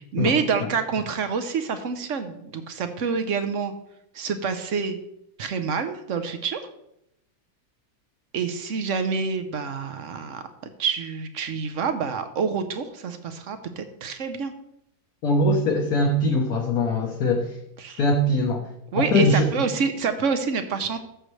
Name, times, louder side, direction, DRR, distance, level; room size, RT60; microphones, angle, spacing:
voice 1, 0.1-3.7 4.1-5.0 5.4-6.6 8.3-10.4 10.8-14.5 17.8-18.0 18.9-21.0, right 5 dB, 55° right, 9 dB, 0.9 m, -27 dB
voice 2, 15.2-17.6 18.0-18.7 18.9-19.5, left 1 dB, 60° left, 1 dB, 1.4 m, -21 dB
14.0 x 6.5 x 3.2 m, 0.80 s
omnidirectional pair, 2.0 m